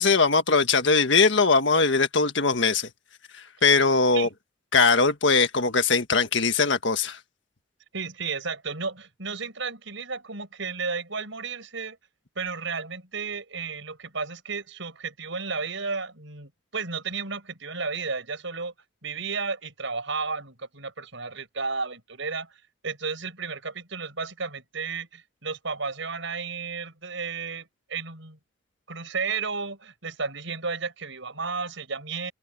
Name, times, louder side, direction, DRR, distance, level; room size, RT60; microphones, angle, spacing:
voice 1, 0.0-2.9 3.6-4.3 4.7-7.2, left 4 dB, 60° left, 1.7 m, -21 dB
voice 2, 7.9-12.0 12.4-18.7 19.0-28.4 28.9-32.3, right 4 dB, 70° right, 5.4 m, -33 dB
head